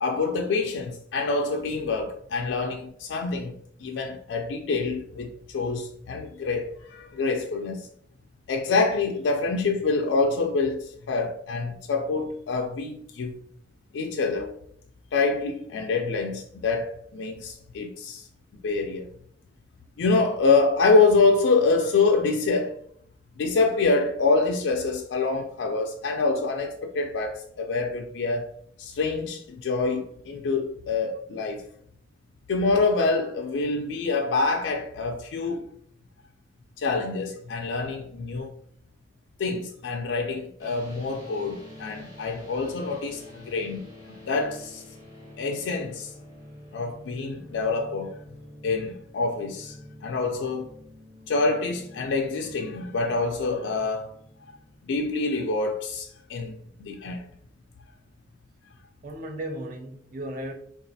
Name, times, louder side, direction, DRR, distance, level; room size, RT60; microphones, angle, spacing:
voice 1, 0.0-3.5 3.8-7.9 8.5-13.4 13.9-14.5 15.1-18.3 18.6-19.1 20.0-22.8 23.4-28.5 28.8-31.7 32.5-35.7 36.8-38.5 39.4-43.9 44.2-44.8 45.4-46.1 46.7-48.2 48.6-50.7 51.3-54.1 54.8-57.3, left 3 dB, 80° left, 0.3 m, -26 dB
sound 1, 40.6-54.8, left 1 dB, 20° right, 1.0 m, -47 dB
voice 2, 59.0-60.5, right 1 dB, 45° right, 0.5 m, -35 dB
3.9 x 2.4 x 2.6 m
head